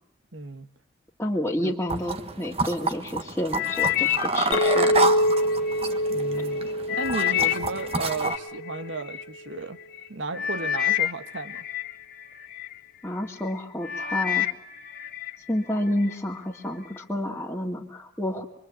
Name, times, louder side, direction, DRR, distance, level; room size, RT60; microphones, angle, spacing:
voice 1, 0.3-0.7 1.6-1.8 6.1-9.8 10.1-11.6, right 3 dB, 75° right, 10 dB, 1.6 m, -34 dB
voice 2, 1.2-4.1 4.3-5.1 13.0-14.5 15.5-18.4, left 1 dB, 10° left, -6 dB, 2.1 m, -29 dB
sound 1, 1.9-8.4, right 3 dB, 30° right, 1.4 m, -29 dB
sound 2, 3.5-5.9 6.4-9.2 9.9-10.1 10.3-12.7 13.2-13.5 13.8-15.3 15.7-16.2 16.8-16.9, left 12 dB, 45° left, 1.6 m, -29 dB
Chink clink, 4.5-9.0, equal, 85° left, 1.2 m, -26 dB
25.5 x 24.0 x 8.4 m, 0.68 s
head